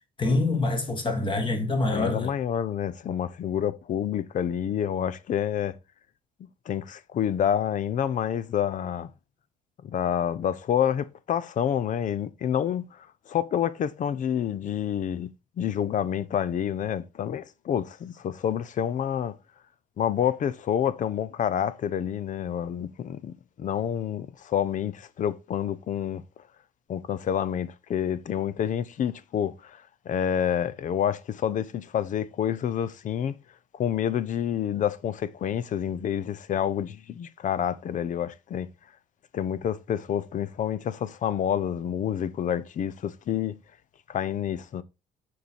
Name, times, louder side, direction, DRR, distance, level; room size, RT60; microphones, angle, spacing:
voice 1, 0.2-2.3, left 2 dB, 30° left, 2.0 m, -25 dB
voice 2, 1.9-5.8 6.7-9.1 9.8-13.0 13.3-19.4 20.0-26.2 26.9-33.4 33.7-38.7 39.3-43.6 44.1-44.8, left 9 dB, 50° left, 0.7 m, -28 dB
6.7 x 4.8 x 4.2 m
cardioid pair, 110°, 17 cm